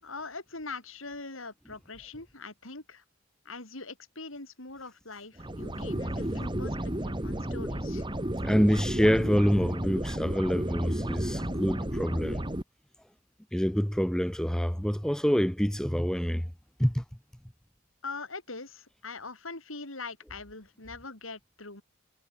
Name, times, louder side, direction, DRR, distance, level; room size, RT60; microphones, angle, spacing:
voice 1, 0.0-3.0 3.4-6.8 7.0-8.0 18.0-21.8, left 3 dB, 80° left, 5.7 m, -42 dB
sound 1, 5.4-12.6, right 1 dB, 25° right, 2.2 m, -32 dB
voice 2, 8.4-12.5 13.5-16.5 16.8-17.0, equal, 5° left, 0.6 m, -26 dB
head